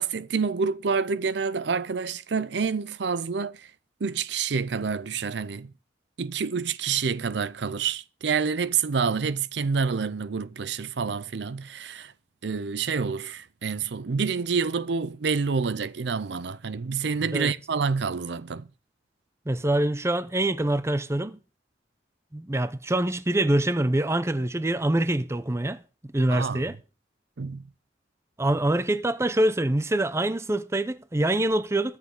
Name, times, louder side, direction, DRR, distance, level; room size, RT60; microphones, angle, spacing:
voice 1, 0.0-3.7 4.0-5.7 6.2-12.1 12.4-18.7 26.3-26.7 27.4-27.6, right 5 dB, 65° right, 0.6 m, -28 dB
voice 2, 19.5-21.4 22.3-25.8 26.1-26.7 28.4-32.0, right 1 dB, 15° right, 0.6 m, -25 dB
21.5 x 7.3 x 3.8 m
head